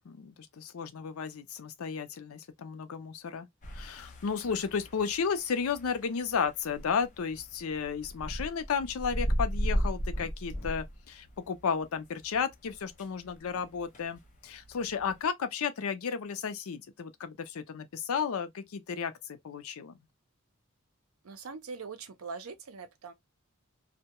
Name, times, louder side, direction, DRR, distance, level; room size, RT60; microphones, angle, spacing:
voice 1, 0.1-3.5 3.7-20.0, left 6 dB, 85° left, 0.5 m, -33 dB
sound 1, 3.6-15.2, equal, 40° left, 0.6 m, -37 dB
voice 2, 21.2-23.1, right 4 dB, 85° right, 0.6 m, -42 dB
2.2 x 2.1 x 2.8 m
head